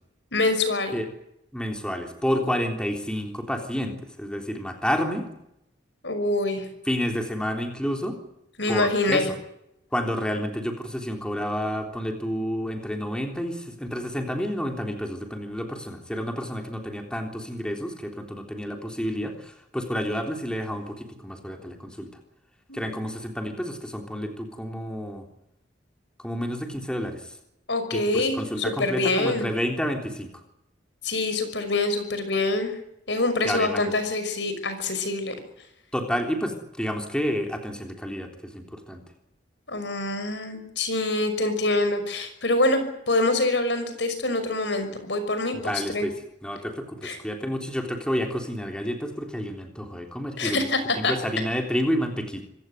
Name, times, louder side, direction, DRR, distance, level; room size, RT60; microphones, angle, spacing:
voice 1, 0.3-0.9 6.0-6.7 8.6-9.3 22.7-22.9 27.7-29.5 31.0-32.7 33.1-35.3 39.7-46.1 47.0-47.2 50.4-51.1, left 2 dB, 70° left, 9 dB, 5.9 m, -25 dB
voice 2, 1.5-5.3 6.9-8.2 8.7-9.4 9.9-22.1 22.7-25.3 26.2-27.4 27.9-30.3 33.4-33.9 35.9-39.0 45.5-50.7 51.0-52.4, equal, 5° left, 3 dB, 3.5 m, -30 dB
26.0 x 16.5 x 9.4 m, 0.82 s
head